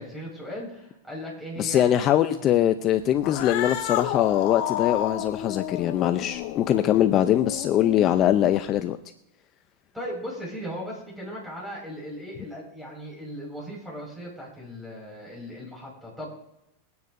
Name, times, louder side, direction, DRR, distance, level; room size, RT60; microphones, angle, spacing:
voice 1, 0.0-1.8 2.3-2.4 9.9-16.4, equal, 5° right, -3 dB, 5.4 m, -37 dB
voice 2, 1.6-9.0, left 11 dB, 40° left, 9 dB, 0.6 m, -22 dB
Cat, 3.2-8.8, left 12 dB, 55° left, 1.0 m, -31 dB
22.5 x 9.5 x 2.7 m, 0.87 s
hypercardioid pair, 120°, 0 cm